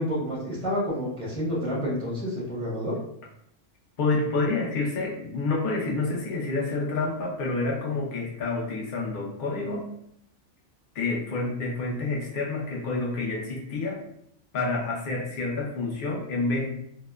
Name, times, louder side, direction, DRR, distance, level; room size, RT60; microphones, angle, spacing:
voice 1, 0.0-3.0, equal, 5° left, -6 dB, 0.6 m, -29 dB
voice 2, 4.0-9.9 10.9-14.0 14.5-16.7, left 3 dB, 55° left, -2 dB, 0.6 m, -28 dB
2.8 x 2.1 x 2.2 m, 0.74 s
omnidirectional pair, 1.3 m